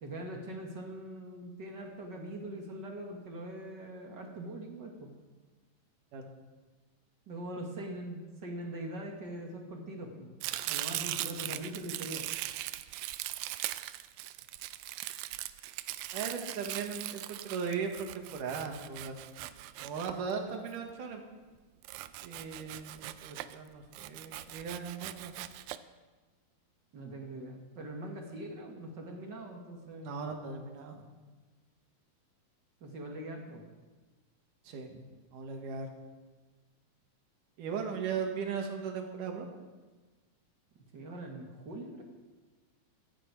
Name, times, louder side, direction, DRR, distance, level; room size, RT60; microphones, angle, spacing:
voice 1, 0.0-5.1 7.3-10.3 10.6-12.3 26.9-30.3 32.8-33.6 40.9-42.0, right 1 dB, 45° right, 1 dB, 1.6 m, -42 dB
Domestic sounds home sounds, 10.4-20.7 21.8-23.6 23.9-25.8, right 15 dB, 85° right, 2.3 m, -40 dB
voice 2, 16.1-19.2 19.8-21.2 22.2-25.3 30.0-31.1 34.7-35.0 35.3-35.9 37.6-39.5, right 6 dB, 70° right, 3 dB, 3.0 m, -38 dB
16.0 x 12.5 x 4.8 m, 1.3 s
omnidirectional pair, 4.0 m